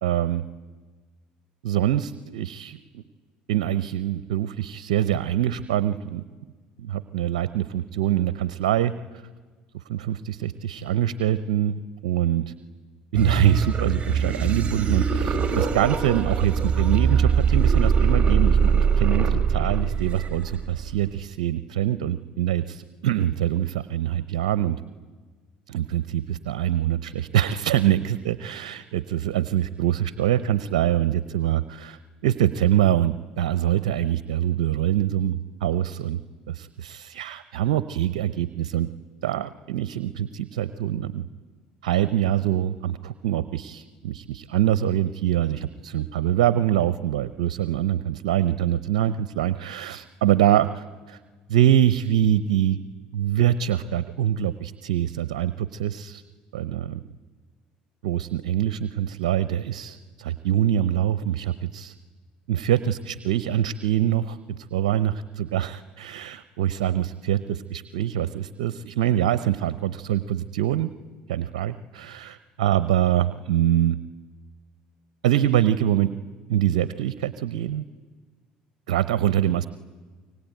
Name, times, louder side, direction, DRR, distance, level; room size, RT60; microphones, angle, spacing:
voice 1, 0.0-0.4 1.6-3.0 3.5-6.2 6.8-9.2 9.7-12.5 13.1-24.8 25.7-36.2 36.5-38.9 39.2-41.3 41.8-51.2 51.5-52.8 53.1-56.2 56.5-57.0 58.0-61.9 62.5-70.9 71.3-74.0 75.2-76.1 76.5-77.8 78.9-79.7, right 11 dB, 80° right, 14 dB, 0.7 m, -24 dB
sound 1, 13.1-21.2, right 6 dB, 30° right, 3.5 m, -22 dB
25.5 x 23.5 x 9.2 m, 1.4 s
hypercardioid pair, 75°, 4 cm